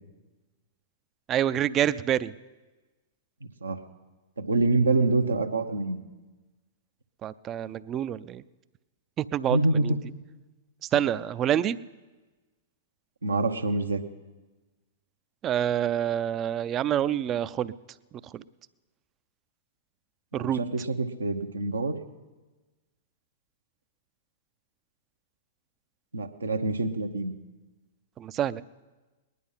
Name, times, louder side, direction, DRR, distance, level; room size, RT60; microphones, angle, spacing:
voice 1, 1.3-2.3 7.2-8.4 9.2-9.9 10.9-11.8 15.4-17.7 18.2-18.4 20.3-20.6 28.2-28.6, right 10 dB, 30° right, 16 dB, 0.5 m, -27 dB
voice 2, 3.4-3.8 4.4-6.0 9.5-9.9 10.9-11.1 13.2-14.0 20.3-22.0 26.1-27.3, right 3 dB, 85° right, 6 dB, 1.1 m, -26 dB
19.5 x 11.0 x 5.6 m, 1.2 s
hypercardioid pair, 105°, 0 cm